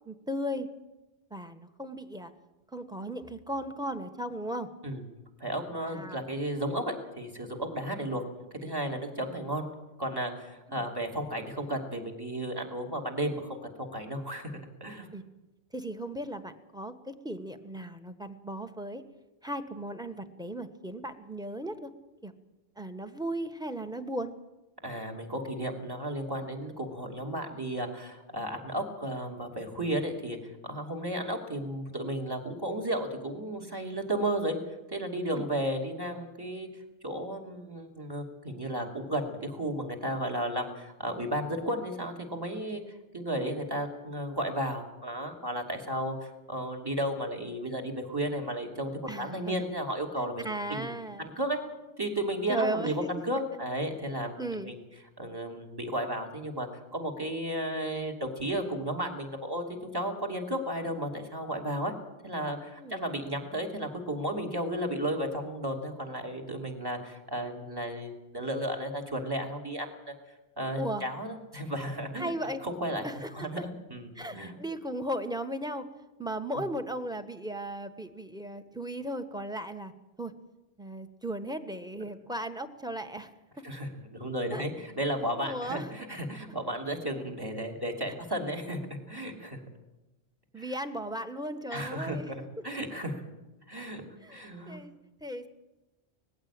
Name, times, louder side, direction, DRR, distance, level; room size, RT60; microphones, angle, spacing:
voice 1, 0.0-0.7 1.3-2.3 2.7-4.7 5.8-6.2 10.7-10.8 15.1-15.2 15.7-19.0 19.4-21.9 22.2-22.3 22.8-24.3 35.3-35.5 49.1-49.7 50.4-51.3 52.5-53.1 54.4-54.7 62.7-63.0 70.8-71.0 72.2-72.6 73.0-73.7 74.1-75.9 76.2-79.9 80.2-80.3 80.8-83.3 84.5-84.6 85.4-85.9 88.1-88.2 90.5-92.3 94.2-94.9 95.2-95.5, right 1 dB, 5° right, 10 dB, 1.2 m, -36 dB
voice 2, 5.4-8.2 8.5-9.7 10.0-14.5 14.8-15.1 24.8-30.4 30.7-34.5 34.9-36.7 37.0-42.8 43.1-50.9 51.2-51.6 52.0-54.4 54.6-54.8 55.2-61.9 62.2-70.1 70.6-72.3 72.6-73.0 73.4-74.5 76.5-76.6 83.6-88.8 89.1-89.6 90.6-90.7 91.7-93.2 93.7-94.0 94.3-94.8, right 1 dB, 20° right, 4 dB, 2.9 m, -33 dB
19.5 x 15.5 x 8.8 m, 1.1 s
omnidirectional pair, 1.1 m